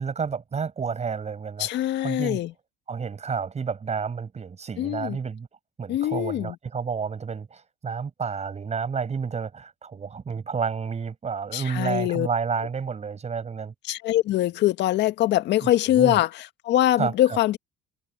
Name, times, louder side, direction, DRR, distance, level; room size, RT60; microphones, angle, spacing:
voice 1, 0.0-1.7 2.0-2.4 2.9-5.5 5.8-13.7 15.6-16.2 17.0-17.4, right 6 dB, 35° right, 7.1 m, -30 dB
voice 2, 1.6-2.5 4.8-5.2 5.9-6.6 11.5-12.3 13.9-17.6, left 13 dB, 65° left, 1.7 m, -23 dB
supercardioid pair, 75°, 19 cm